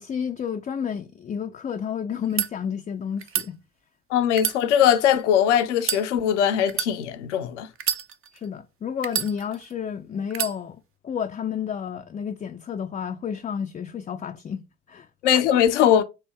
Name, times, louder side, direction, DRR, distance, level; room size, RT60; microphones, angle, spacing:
voice 1, 0.0-3.6 8.3-15.1, left 7 dB, 20° left, 0.4 m, -31 dB
sound 1, 2.2-2.5 3.2-3.5 4.3-5.2 5.8-6.0 6.7-6.9 7.8-8.4 9.0-9.7 10.3-10.6, right 9 dB, 40° right, 0.6 m, -28 dB
voice 2, 4.1-7.7 15.2-16.0, left 9 dB, 80° left, 0.7 m, -20 dB
4.3 x 2.6 x 4.8 m
hypercardioid pair, 55°, 35 cm